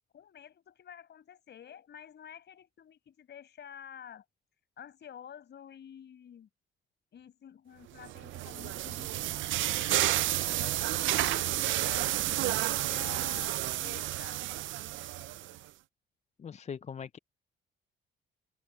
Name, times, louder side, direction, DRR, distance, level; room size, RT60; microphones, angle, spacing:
voice 1, 0.1-4.2 4.8-6.5 7.1-9.5 9.8-10.1 10.5-14.4, left 9 dB, 60° left, 6.4 m, -49 dB
sound 1, 8.0-15.6, right 15 dB, 75° right, 0.5 m, -31 dB
voice 2, 16.4-17.2, left 7 dB, 35° left, 0.5 m, -41 dB
cardioid pair, 90°, 20 cm